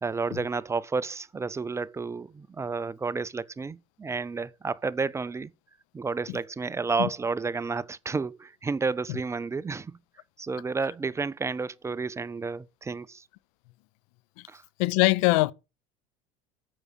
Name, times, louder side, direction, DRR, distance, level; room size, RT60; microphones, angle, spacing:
voice 1, 0.0-5.5 5.9-10.0 10.4-13.2 14.5-14.6, right 4 dB, 15° right, 0.4 m, -31 dB
voice 2, 14.8-15.5, left 23 dB, 75° left, 0.5 m, -22 dB
7.4 x 6.1 x 6.6 m
supercardioid pair, 95°, 17 cm